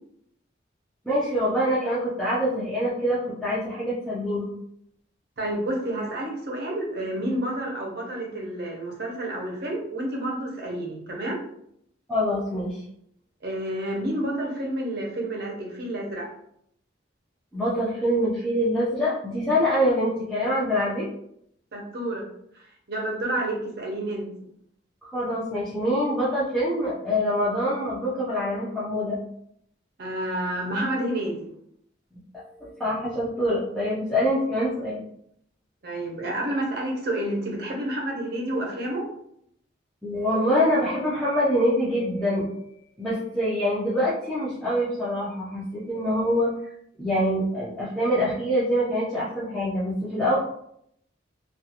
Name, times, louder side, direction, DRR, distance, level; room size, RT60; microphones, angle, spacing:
voice 1, 1.0-4.5 12.1-12.8 17.5-21.1 25.0-29.2 32.3-35.0 40.0-42.5 43.0-46.5 47.0-50.4, equal, ahead, -10 dB, 0.5 m, -25 dB
voice 2, 5.4-11.4 13.4-16.3 21.7-22.3 22.5-24.3 30.0-31.5 35.8-39.1, right 1 dB, 55° right, 0 dB, 0.7 m, -29 dB
2.4 x 2.4 x 2.8 m, 0.71 s
head